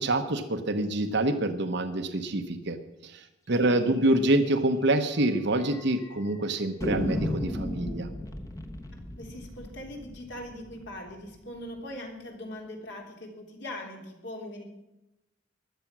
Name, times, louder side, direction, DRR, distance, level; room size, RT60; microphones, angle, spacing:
voice 1, 0.0-2.8 3.0-8.1, right 1 dB, 60° right, 7 dB, 1.0 m, -26 dB
voice 2, 3.5-3.9 9.2-14.6, left 1 dB, 65° left, 1 dB, 3.5 m, -41 dB
sound 1, 4.0-4.1 4.4-4.5 4.8-4.9 5.6-6.1 6.8-11.6, left 1 dB, 20° left, 1.1 m, -35 dB
16.0 x 11.5 x 6.1 m, 0.93 s
head